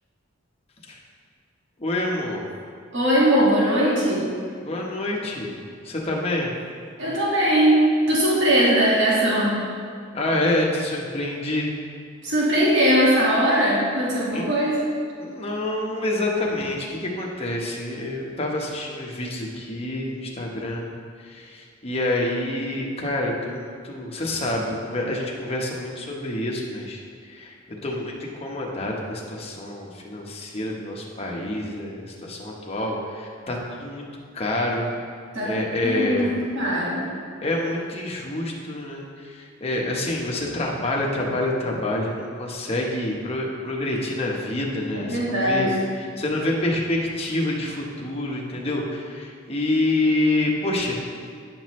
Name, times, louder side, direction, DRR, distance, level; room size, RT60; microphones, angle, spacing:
voice 1, 1.8-2.5 4.6-5.6 5.8-6.5 10.1-11.7 14.3-14.5 15.2-21.0 21.2-27.0 27.3-34.1 34.3-34.9 35.4-36.4 37.4-45.7 46.2-51.0, left 1 dB, 30° left, -2 dB, 1.0 m, -27 dB
voice 2, 2.9-4.3 7.0-9.6 12.2-14.8 35.3-35.5 35.8-37.1 44.9-45.7, equal, 65° right, -7 dB, 1.9 m, -20 dB
9.9 x 5.8 x 3.1 m, 2.2 s
head